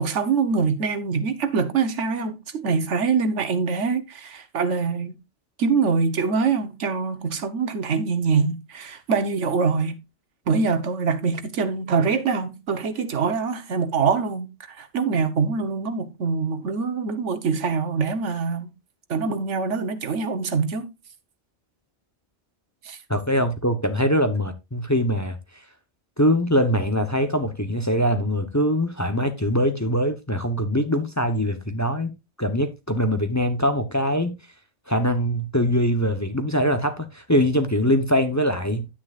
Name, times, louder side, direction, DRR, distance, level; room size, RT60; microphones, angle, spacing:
voice 1, 0.0-5.2 5.6-10.0 10.5-18.7 19.1-20.9 22.8-23.0, right 5 dB, 85° right, 1.4 m, -24 dB
voice 2, 23.1-25.4 26.2-34.3 34.9-38.9, equal, 15° left, 0.8 m, -23 dB
9.8 x 9.3 x 2.4 m
omnidirectional pair, 1.2 m